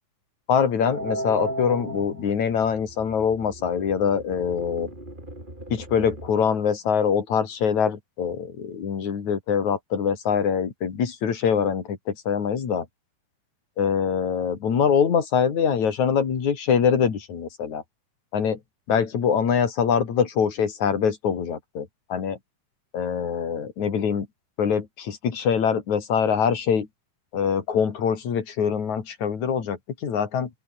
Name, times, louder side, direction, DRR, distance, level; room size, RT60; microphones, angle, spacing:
voice 1, 0.5-4.9 5.7-12.9 13.8-17.8 18.3-18.6 18.9-22.4 22.9-24.3 24.6-26.9 27.3-30.5, left 7 dB, 65° left, 4.4 m, -24 dB
sound 1, 0.8-6.3, right 1 dB, 15° right, 7.8 m, -36 dB
open air
omnidirectional pair, 3.7 m